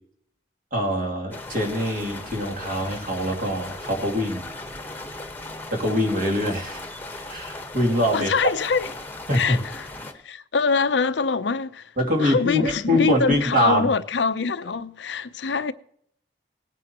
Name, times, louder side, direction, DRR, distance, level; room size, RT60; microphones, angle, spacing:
voice 1, 0.7-4.5 5.7-6.8 7.3-8.5 9.3-9.6 12.0-13.9, equal, 50° right, 2.7 m, -24 dB
sound 1, 1.3-10.1, left 2 dB, 10° left, 1.2 m, -37 dB
voice 2, 8.1-8.9 9.3-9.9 10.2-11.9 12.2-15.7, left 5 dB, 80° left, 0.6 m, -24 dB
19.0 x 9.3 x 2.9 m
head